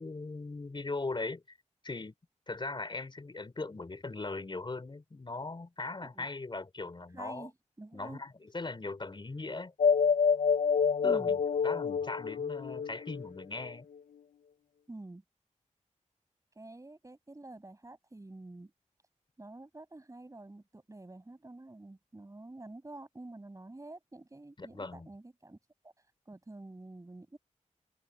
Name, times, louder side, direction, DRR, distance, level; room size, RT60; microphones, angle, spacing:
voice 1, 0.0-1.6 1.8-2.1 2.5-7.5 7.9-9.7 11.0-13.9 24.6-25.1, left 3 dB, 40° left, 4.0 m, -39 dB
voice 2, 7.1-7.5 7.8-8.2 11.0-11.4 14.9-15.2 16.5-18.7 19.4-25.6 25.8-25.9 26.3-27.4, right 2 dB, 25° right, 7.8 m, -48 dB
sound 1, 9.8-13.7, left 6 dB, 85° left, 0.6 m, -27 dB
wide cardioid pair, 95°, 13 cm